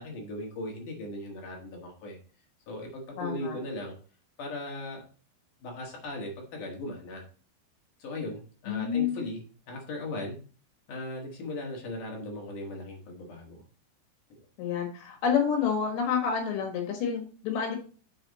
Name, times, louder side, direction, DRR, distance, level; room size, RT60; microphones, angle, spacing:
voice 1, 0.0-2.2 2.7-4.0 4.4-5.0 5.6-7.2 8.0-9.4 9.7-10.4 10.9-13.6, left 1 dB, 55° left, 0 dB, 2.6 m, -38 dB
voice 2, 3.2-3.6 8.7-9.2 14.6-17.8, left 7 dB, 75° left, 2 dB, 3.6 m, -28 dB
6.9 x 5.5 x 4.0 m, 0.39 s
omnidirectional pair, 5.1 m